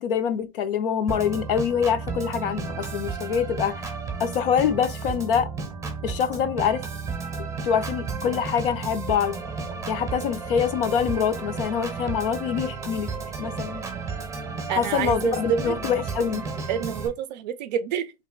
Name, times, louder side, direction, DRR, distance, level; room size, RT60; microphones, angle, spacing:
voice 1, 0.0-3.7 4.2-5.5 6.0-6.9 7.6-9.4 9.9-13.1 13.4-13.8 14.7-16.4, left 7 dB, 55° left, 0.6 m, -25 dB
Organ, 1.1-17.1, right 4 dB, 10° right, 0.8 m, -33 dB
voice 2, 14.7-15.8 16.7-18.1, right 8 dB, 45° right, 0.5 m, -27 dB
3.0 x 3.0 x 4.4 m
supercardioid pair, 165°, 33 cm